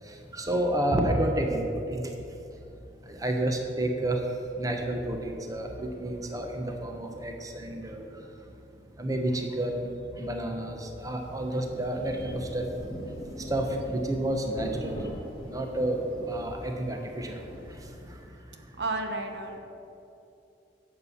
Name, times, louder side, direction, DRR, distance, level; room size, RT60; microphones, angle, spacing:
voice 1, 0.3-2.1 3.1-4.2 4.6-8.1 9.0-9.9 10.2-12.7 13.5-15.0 15.5-16.0 16.3-17.4, right 1 dB, 20° right, 3 dB, 0.9 m, -30 dB
Rain, 11.0-18.2, equal, 30° left, 2.3 m, -41 dB
voice 2, 18.8-19.6, right 2 dB, 70° right, 5 dB, 1.1 m, -32 dB
10.5 x 7.5 x 7.0 m, 2.7 s
head